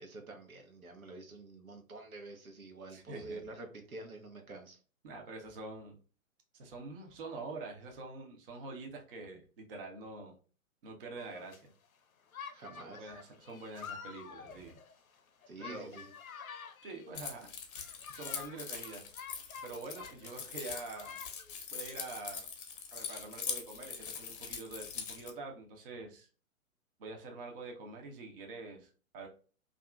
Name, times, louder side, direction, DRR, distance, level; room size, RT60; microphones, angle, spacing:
voice 1, 0.0-4.8 12.5-13.1 15.5-16.1, right 2 dB, 80° right, 3 dB, 0.8 m, -48 dB
voice 2, 2.9-3.4 5.0-6.0 6.5-10.4 10.8-11.7 12.8-14.8 15.6-16.0 16.8-17.5 18.1-19.1 19.6-21.2 21.7-22.5 22.9-26.3 27.0-29.3, right 3 dB, 40° right, 2 dB, 0.7 m, -46 dB
sound 1, 11.2-11.6 12.3-17.2 17.7-20.3 20.6-21.5, left 7 dB, 80° left, 0.5 m, -49 dB
Keys jangling, 17.1-25.3, left 6 dB, 40° left, 0.6 m, -42 dB
2.7 x 2.5 x 2.2 m, 0.38 s
figure-of-eight pair, 115°, 42 cm